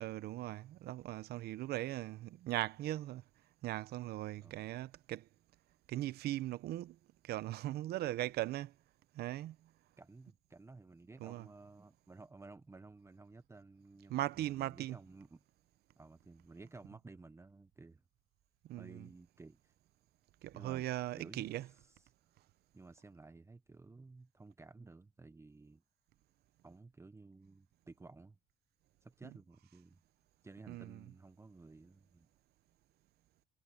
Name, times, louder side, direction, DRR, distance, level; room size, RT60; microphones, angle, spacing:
voice 1, 0.0-3.2 3.6-5.3 5.9-7.0 7.2-8.7 9.1-9.6 11.2-11.5 14.1-15.0 18.7-19.1 20.4-21.7 29.2-29.3 30.7-31.0, right 15 dB, 70° right, 0.8 m, -39 dB
voice 2, 10.0-15.4 16.0-18.0 18.8-19.7 20.5-20.9 21.1-21.5 22.7-25.8 26.6-28.4 29.0-30.0 30.4-32.3, right 3 dB, 15° right, 1.0 m, -55 dB
cardioid pair, 110°, 17 cm